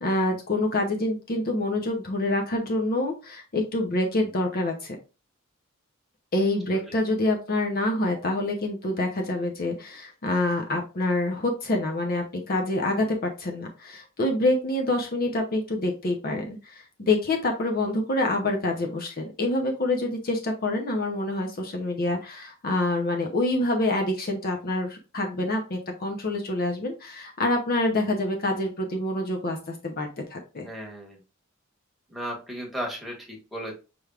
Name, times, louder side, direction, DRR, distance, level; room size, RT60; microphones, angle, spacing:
voice 1, 0.0-5.0 6.3-30.7, left 2 dB, 45° left, 2 dB, 0.7 m, -26 dB
voice 2, 30.6-31.2 32.1-33.7, equal, ahead, -1 dB, 1.3 m, -35 dB
6.0 x 3.3 x 2.4 m, 0.30 s
head